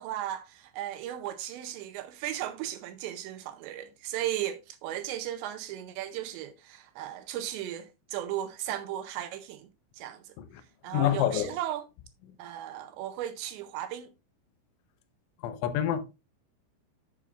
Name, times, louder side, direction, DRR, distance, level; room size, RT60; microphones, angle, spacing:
voice 1, 0.0-9.7 9.9-10.3 10.8-11.9 12.4-14.1, right 12 dB, 85° right, 2.6 m, -36 dB
voice 2, 10.9-11.5 15.4-16.2, left 11 dB, 80° left, 3.2 m, -27 dB
11.5 x 7.0 x 2.4 m
omnidirectional pair, 5.8 m